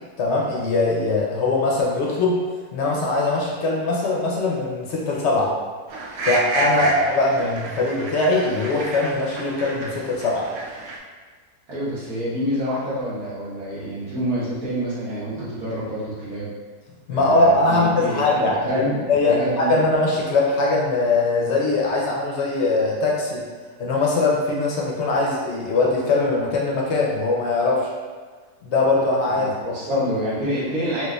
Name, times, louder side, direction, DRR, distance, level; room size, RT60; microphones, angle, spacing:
voice 1, 0.2-2.4 2.7-5.5 6.3-10.5 17.1-23.4 23.8-27.9 28.6-29.5, left 2 dB, 65° left, -3 dB, 0.7 m, -21 dB
sound 1, 5.9-11.0, right 2 dB, 85° right, 0.5 m, -30 dB
voice 2, 11.7-16.5 17.1-19.7 29.2-31.0, equal, 70° right, -10 dB, 1.5 m, -27 dB
4.5 x 2.4 x 2.2 m, 1.5 s
omnidirectional pair, 1.7 m